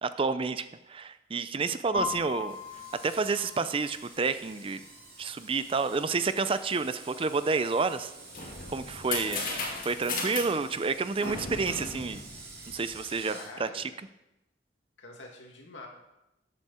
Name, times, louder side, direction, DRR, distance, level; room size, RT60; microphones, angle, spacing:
voice 1, 0.0-2.6 3.0-4.8 5.2-8.1 8.7-9.4 9.9-12.2 12.7-13.9, right 4 dB, 30° right, 13 dB, 0.4 m, -29 dB
sound 1, 1.9-9.8, left 4 dB, 25° left, 2.7 m, -42 dB
Screech, 2.5-13.5, right 3 dB, 50° right, 2.4 m, -50 dB
sound 2, 8.0-13.0, left 3 dB, 45° left, 2.3 m, -36 dB
voice 2, 9.2-9.7 13.2-13.9 15.0-15.9, left 2 dB, 80° left, 0 dB, 2.4 m, -45 dB
13.0 x 8.2 x 4.3 m, 0.92 s
head